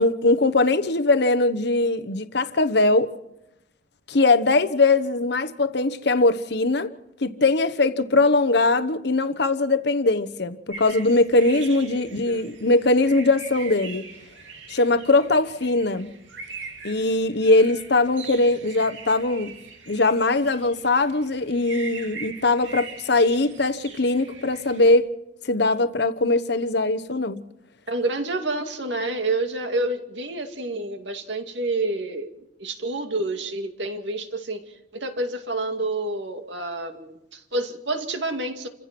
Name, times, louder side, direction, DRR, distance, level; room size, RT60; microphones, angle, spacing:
voice 1, 0.0-3.1 4.1-6.9 7.2-14.1 14.7-16.1 16.8-19.5 19.9-25.1 25.4-27.4, left 2 dB, 65° left, 1.1 m, -21 dB
sound 1, 10.7-24.9, right 5 dB, 90° right, 2.9 m, -42 dB
voice 2, 11.8-12.4 27.9-32.3 32.6-34.6 34.9-38.7, right 2 dB, 75° right, 2.3 m, -28 dB
28.5 x 15.5 x 6.1 m
head